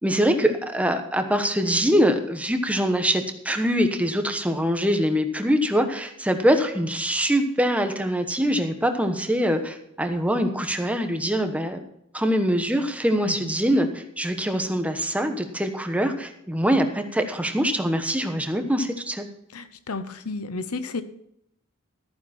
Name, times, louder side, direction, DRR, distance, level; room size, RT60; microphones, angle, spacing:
voice 1, 0.0-11.8 12.1-19.3, equal, 5° right, 6 dB, 1.1 m, -23 dB
voice 2, 19.5-21.0, left 3 dB, 90° left, 11 dB, 0.9 m, -32 dB
14.0 x 9.3 x 4.3 m, 0.75 s
head